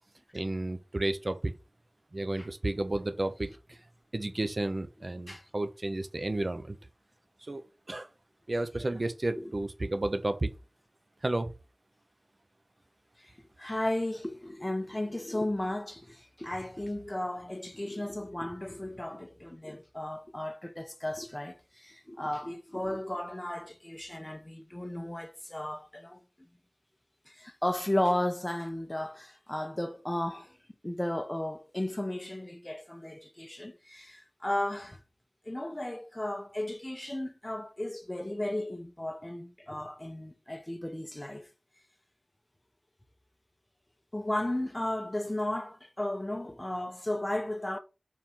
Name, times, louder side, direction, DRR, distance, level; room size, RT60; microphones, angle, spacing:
voice 1, 0.3-1.5 2.1-3.5 4.1-6.8 7.5-8.1 8.5-10.5 11.2-11.5, right 2 dB, 60° right, 0.9 m, -32 dB
voice 2, 13.6-26.2 27.3-30.5 30.8-35.0 35.5-41.5 44.1-47.8, left 1 dB, 25° left, 1.2 m, -34 dB
4.8 x 4.4 x 5.6 m
wide cardioid pair, 40°, 0 cm